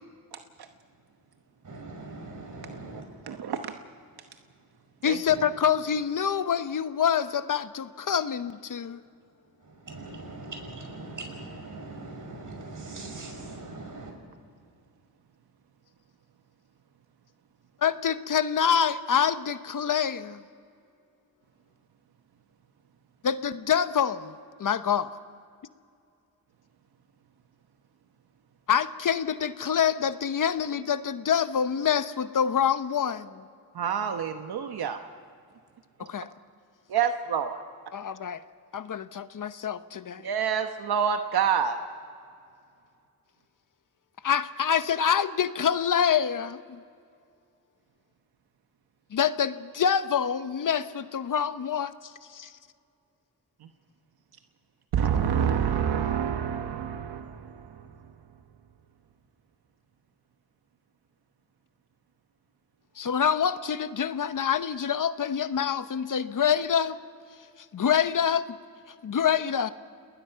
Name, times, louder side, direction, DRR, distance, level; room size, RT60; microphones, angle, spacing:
voice 1, 0.3-0.7 3.3-3.8 5.0-5.2 33.7-35.0 36.0-36.1 36.9-37.6 40.2-41.8 53.6-53.7 54.9-58.1, right 8 dB, 90° right, 6 dB, 1.1 m, -28 dB
voice 2, 1.6-3.2 4.9-5.0 5.3-5.5 9.6-14.1, right 2 dB, 55° right, 3 dB, 5.9 m, -41 dB
voice 3, 5.0-9.0 17.8-20.4 23.2-24.3 24.6-25.1 28.7-33.5 36.0-36.3 37.9-38.4 38.7-40.3 44.2-46.8 49.1-52.5 63.0-67.0 67.6-68.6 69.0-69.7, left 8 dB, 60° left, 12 dB, 0.9 m, -26 dB
30.0 x 20.0 x 5.7 m, 2.3 s
wide cardioid pair, 95°, 37 cm